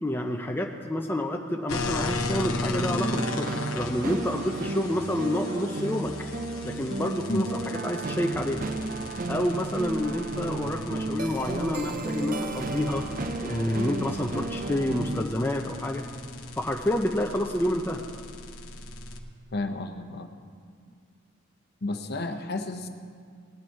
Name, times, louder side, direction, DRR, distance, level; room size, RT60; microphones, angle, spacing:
voice 1, 0.0-6.1 6.6-8.6 9.3-13.1 13.4-16.1 16.6-18.0, left 1 dB, 10° left, 2 dB, 0.5 m, -29 dB
sound 1, 1.7-19.2, left 2 dB, 80° left, 1.0 m, -37 dB
sound 2, 2.7-15.2, right 2 dB, 40° right, 0.5 m, -33 dB
voice 2, 19.5-20.3 21.8-22.9, left 2 dB, 50° left, 6 dB, 0.8 m, -31 dB
19.5 x 9.0 x 4.6 m, 2.1 s
head